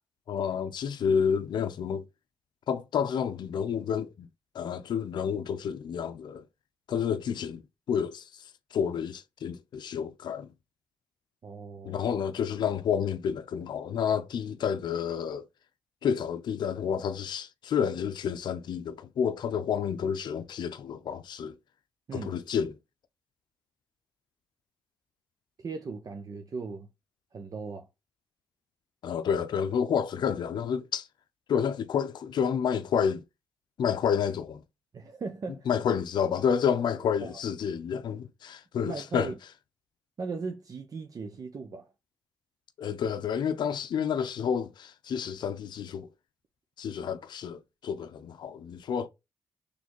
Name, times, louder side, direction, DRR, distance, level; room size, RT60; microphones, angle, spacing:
voice 1, 0.3-2.0 2.7-4.3 4.5-6.5 6.9-10.5 11.8-15.5 16.0-21.6 22.1-22.8 29.0-31.1 31.5-33.2 33.8-34.6 35.7-39.3 42.8-46.1 46.8-49.1, left 7 dB, 70° left, 0.5 m, -30 dB
voice 2, 11.4-12.0 22.1-22.4 25.6-26.9 27.3-27.9 34.9-35.7 37.2-37.3 38.8-39.3 40.2-41.9, right 4 dB, 50° right, 0.7 m, -38 dB
4.1 x 3.3 x 3.1 m
supercardioid pair, 60°, 8 cm